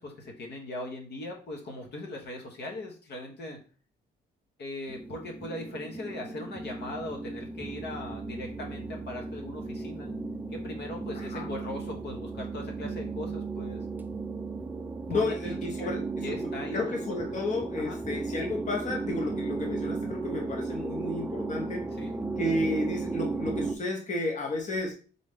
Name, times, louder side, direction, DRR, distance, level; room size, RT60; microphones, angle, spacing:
voice 1, 0.0-3.6 4.6-10.1 10.5-13.8 15.1-16.8 17.3-17.4 17.8-18.0 22.0-22.2, left 1 dB, 60° left, 1 dB, 1.2 m, -39 dB
sound 1, 4.9-23.7, right 3 dB, 10° right, 0.4 m, -35 dB
voice 2, 11.1-11.5 15.1-16.0 16.3-16.4 16.7-21.9 22.4-24.9, left 2 dB, 40° left, 0 dB, 1.0 m, -32 dB
3.9 x 3.1 x 3.6 m, 0.38 s
cardioid pair, 90°, 20 cm